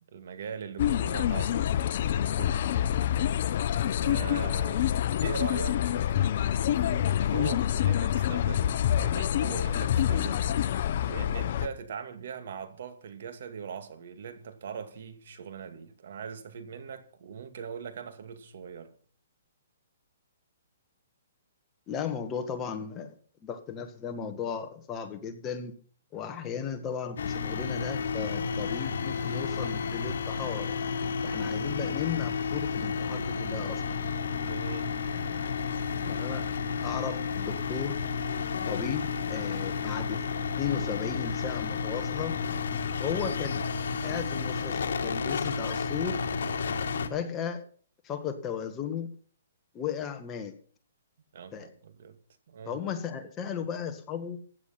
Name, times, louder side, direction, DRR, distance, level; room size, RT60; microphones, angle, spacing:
voice 1, 0.1-1.8 2.1-2.9 4.0-4.9 5.2-5.8 6.7-10.5 11.0-18.9 31.7-31.8 32.8-32.9 34.3-35.1 51.3-52.2 52.5-52.8, right 7 dB, 60° right, 2.2 m, -41 dB
sound 1, 0.8-11.7, left 10 dB, 50° left, 0.9 m, -27 dB
voice 2, 21.9-23.2 23.4-25.7 26.1-30.7 31.2-33.8 36.0-36.5 36.8-38.0 38.6-40.2 40.6-42.4 43.0-43.6 44.0-46.2 47.1-47.6 48.0-49.1 49.7-50.5 51.5-51.7 52.7-54.4, left 7 dB, 20° left, 1.7 m, -35 dB
sound 2, 27.2-47.1, left 5 dB, 70° left, 1.8 m, -31 dB
15.5 x 9.8 x 5.9 m
hypercardioid pair, 155°, 0 cm